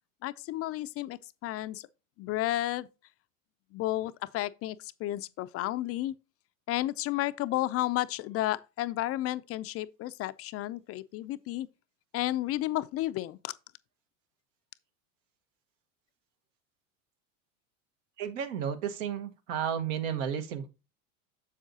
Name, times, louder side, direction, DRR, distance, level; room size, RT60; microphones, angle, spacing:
voice 1, 0.2-1.9 2.2-2.9 3.7-6.1 6.7-11.7 12.1-13.5, left 15 dB, 40° left, 0.4 m, -32 dB
voice 2, 18.2-20.7, right 8 dB, 70° right, 1.3 m, -33 dB
7.3 x 7.1 x 2.7 m
hypercardioid pair, 95°, 39 cm